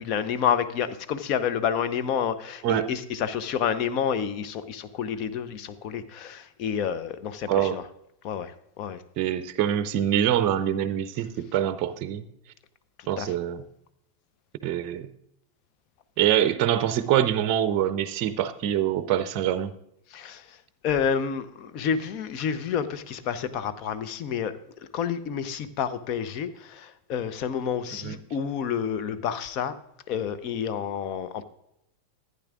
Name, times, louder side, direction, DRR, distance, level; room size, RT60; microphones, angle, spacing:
voice 1, 0.0-7.9 8.2-9.0 13.2-13.3 20.1-24.6 24.9-29.8 30.1-31.4, left 7 dB, 40° left, 12 dB, 0.7 m, -29 dB
voice 2, 9.2-12.3 13.1-13.6 14.6-15.1 16.2-19.7 28.0-28.2, right 10 dB, 40° right, 13 dB, 0.6 m, -25 dB
15.0 x 9.3 x 2.4 m, 0.81 s
figure-of-eight pair, 90°, 0 cm